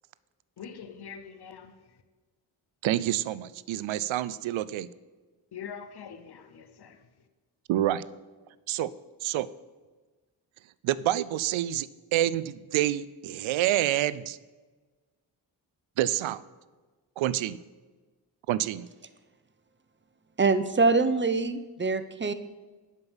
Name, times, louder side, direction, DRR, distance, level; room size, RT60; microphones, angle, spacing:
voice 1, 0.6-1.7 5.5-7.0, left 7 dB, 55° left, 1.0 m, -43 dB
voice 2, 2.8-4.9 7.7-8.1 8.7-8.9 9.2-9.5 10.8-14.4 16.0-16.4 17.2-17.6 18.5-18.9, right 13 dB, 75° right, 0.5 m, -27 dB
voice 3, 20.4-22.3, right 3 dB, 25° right, 0.8 m, -24 dB
8.1 x 5.4 x 7.1 m
supercardioid pair, 45°, 48 cm